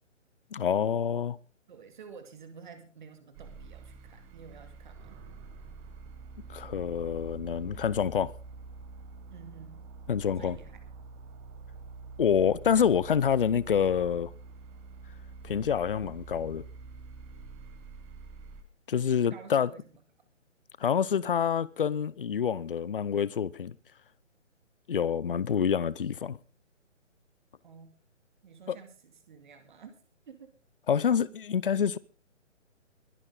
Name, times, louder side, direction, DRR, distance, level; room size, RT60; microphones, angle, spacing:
voice 1, 0.5-1.4 6.5-8.3 10.1-10.5 12.2-14.3 15.4-16.6 18.9-19.7 20.8-23.7 24.9-26.4 28.7-28.8 30.9-32.0, left 7 dB, 45° left, 0.7 m, -27 dB
voice 2, 1.7-5.2 9.3-9.9 10.4-10.8 19.3-19.9 27.6-27.9 28.4-30.0 30.3-30.5, right 6 dB, 40° right, 2.3 m, -50 dB
sound 1, 3.3-18.6, right 4 dB, 15° right, 1.2 m, -46 dB
22.5 x 10.5 x 3.8 m
figure-of-eight pair, 140°, 37 cm